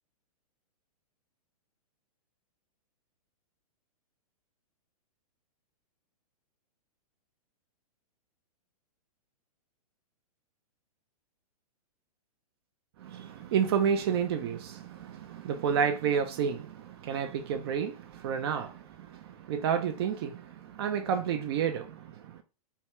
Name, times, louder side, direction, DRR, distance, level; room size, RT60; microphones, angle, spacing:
voice 1, 13.0-22.4, right 7 dB, 40° right, 0.4 m, -30 dB
3.3 x 2.4 x 3.0 m
figure-of-eight pair, 110°, 20 cm